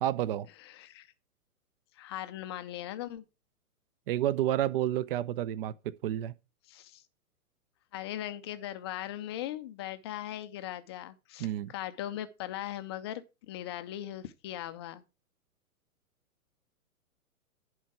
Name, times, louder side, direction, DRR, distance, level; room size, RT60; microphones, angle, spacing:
voice 1, 0.0-0.5 4.1-5.7 6.0-6.3 11.4-11.7, right 12 dB, 40° right, 0.5 m, -29 dB
voice 2, 0.6-1.1 1.9-3.2 6.7-7.0 7.9-15.0, left 12 dB, 20° left, 0.4 m, -39 dB
11.0 x 4.6 x 5.9 m
figure-of-eight pair, 115°, 44 cm